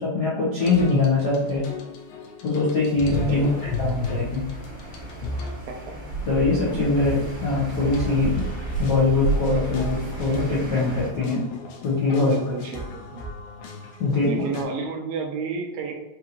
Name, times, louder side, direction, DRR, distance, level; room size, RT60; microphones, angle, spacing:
voice 1, 0.0-1.7 2.4-3.5 3.8-4.5 6.2-8.4 8.8-11.5 11.8-12.3 14.0-14.3, left 3 dB, 70° left, -8 dB, 0.9 m, -22 dB
sound 1, 0.6-5.6 7.0-14.6, left 2 dB, 85° left, 2.1 m, -36 dB
sound 2, 2.7-11.2, right 3 dB, 55° right, 1.8 m, -33 dB
sound 3, 3.0-11.1, right 2 dB, 30° left, 1.0 m, -37 dB
voice 2, 3.3-3.6 5.7-6.0 12.1-13.3 14.2-15.9, right 5 dB, 80° right, 2 dB, 2.1 m, -31 dB
5.5 x 2.9 x 2.5 m, 1.0 s
omnidirectional pair, 3.4 m